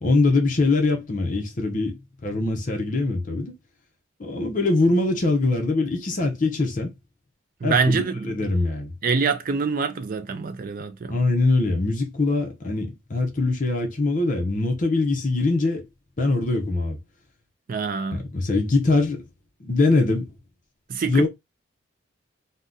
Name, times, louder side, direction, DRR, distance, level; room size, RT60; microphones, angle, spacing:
voice 1, 0.0-3.5 4.2-6.9 7.6-8.9 11.1-15.8 16.2-17.0 18.1-19.2 19.6-20.3 21.1-21.3, left 3 dB, 40° left, 0.6 m, -23 dB
voice 2, 7.6-8.5 9.0-11.2 17.7-18.2 20.9-21.3, right 5 dB, 40° right, 0.3 m, -25 dB
2.7 x 2.1 x 3.5 m
head